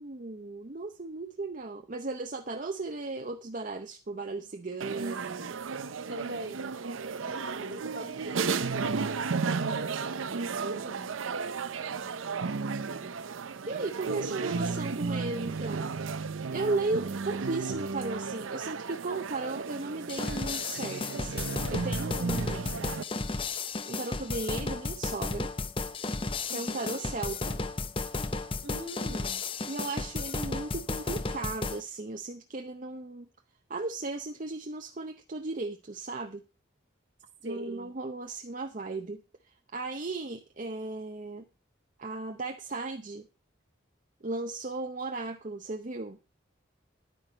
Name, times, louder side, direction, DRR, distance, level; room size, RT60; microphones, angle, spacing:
voice 1, 0.0-5.6 7.3-7.6 8.0-8.1 11.9-13.1 13.7-16.2 16.5-22.9 23.9-25.5 26.5-27.6 29.7-33.3 33.7-36.4 37.4-39.2 39.7-41.4 42.0-43.3 44.2-46.2, right 3 dB, 40° right, 5 dB, 0.7 m, -36 dB
sound 1, 4.8-23.0, right 4 dB, 90° right, 0.6 m, -34 dB
voice 2, 6.1-6.8 7.5-11.3 14.0-14.8 26.5-27.0 28.6-29.5 37.4-37.9, right 2 dB, 60° right, 7 dB, 2.0 m, -42 dB
sound 2, 20.1-31.8, left 3 dB, 25° left, 0.6 m, -34 dB
11.0 x 9.2 x 4.4 m, 0.31 s
head